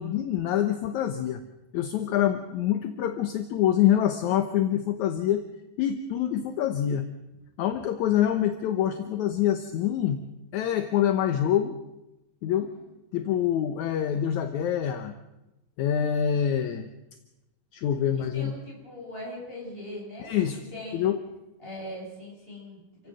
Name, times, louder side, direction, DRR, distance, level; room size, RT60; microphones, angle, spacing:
voice 1, 0.0-1.4 1.7-5.4 5.8-7.1 7.6-10.2 10.5-11.8 12.4-12.7 13.1-15.1 15.8-16.9 17.7-18.5 20.2-20.6 20.9-21.2, left 10 dB, 70° left, 8 dB, 2.3 m, -25 dB
voice 2, 12.5-12.9 18.1-20.3 20.7-21.2 21.6-22.8, left 1 dB, 15° left, -2 dB, 7.9 m, -40 dB
28.0 x 16.5 x 6.5 m, 0.96 s
omnidirectional pair, 3.6 m